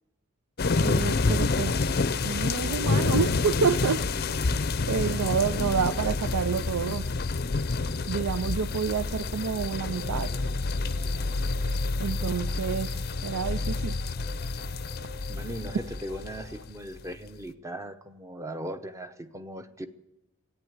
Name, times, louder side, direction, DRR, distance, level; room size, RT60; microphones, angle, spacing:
sound 1, 0.6-17.0, left 3 dB, 45° left, 0.5 m, -28 dB
voice 1, 0.8-4.2 4.9-7.1 8.1-10.3 12.0-14.0, right 6 dB, 85° right, 14 dB, 0.4 m, -29 dB
sound 2, 9.8-16.7, left 1 dB, 70° right, 1.1 m, -47 dB
voice 2, 15.3-19.9, right 1 dB, 15° right, 9 dB, 0.7 m, -38 dB
14.5 x 9.1 x 9.4 m, 0.94 s
head